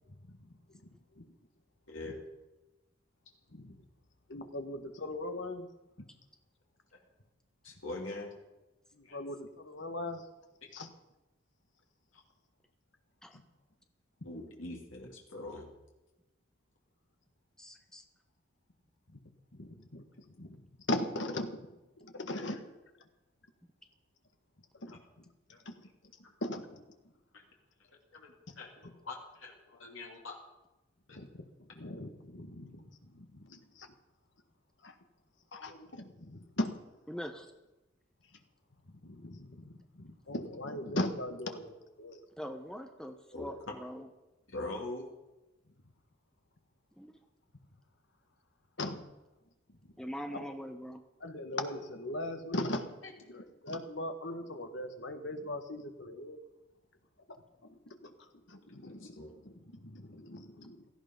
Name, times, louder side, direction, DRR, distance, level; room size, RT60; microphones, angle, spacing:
voice 1, 1.9-2.2 7.6-8.3 9.0-9.2 14.3-15.7 22.4-22.6 24.7-25.0 25.5-25.6 26.2-26.3 27.3-27.4 28.1-30.4 35.5-35.9 43.3-43.5 44.5-45.1 53.0-53.1 58.8-59.4, left 2 dB, 85° left, -1 dB, 2.6 m, -43 dB
voice 2, 4.3-5.7 8.9-10.3 10.7-10.9 13.3-13.4 19.5-20.6 20.9-21.7 22.0-22.6 24.8-25.0 25.6-25.8 26.4-26.8 28.5-28.6 31.1-31.4 31.8-33.9 34.8-34.9 35.5-36.8 38.9-42.2 48.8-49.0 50.3-50.4 51.2-53.0 53.3-56.4 57.6-60.9, left 1 dB, 65° left, 6 dB, 1.6 m, -39 dB
voice 3, 17.6-18.0 37.1-37.5 42.4-44.1 47.0-47.1 50.0-51.0, equal, 5° left, 5 dB, 1.0 m, -42 dB
17.0 x 14.5 x 5.3 m, 1.0 s
head